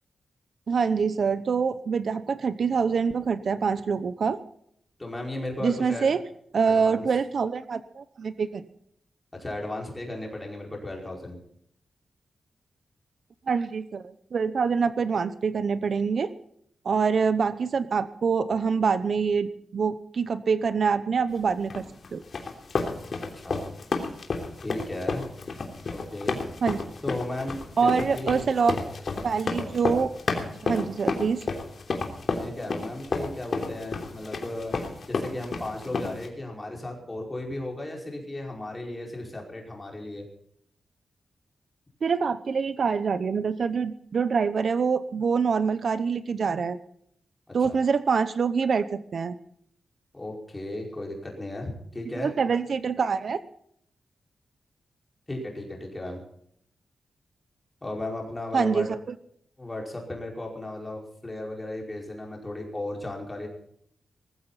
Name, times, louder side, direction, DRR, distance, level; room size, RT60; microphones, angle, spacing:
voice 1, 0.7-4.4 5.6-6.2 6.5-8.6 13.5-16.3 16.8-21.8 22.1-22.2 26.6-26.9 27.8-28.7 29.2-30.1 30.6-31.4 42.0-46.8 47.5-49.4 52.2-53.4 58.5-59.0, right 5 dB, 55° right, 13 dB, 0.8 m, -25 dB
voice 2, 5.0-6.2 6.6-7.1 9.4-11.4 23.2-23.6 24.6-25.3 25.9-26.4 27.0-28.5 32.3-34.7 35.1-40.2 47.6-47.8 50.1-52.3 55.3-56.2 57.8-58.9 59.6-63.5, left 1 dB, 15° left, 0 dB, 5.1 m, -35 dB
sound 1, 21.7-36.3, left 4 dB, 50° left, 3.1 m, -31 dB
20.5 x 15.0 x 4.2 m, 0.68 s
wide cardioid pair, 160°, 0 cm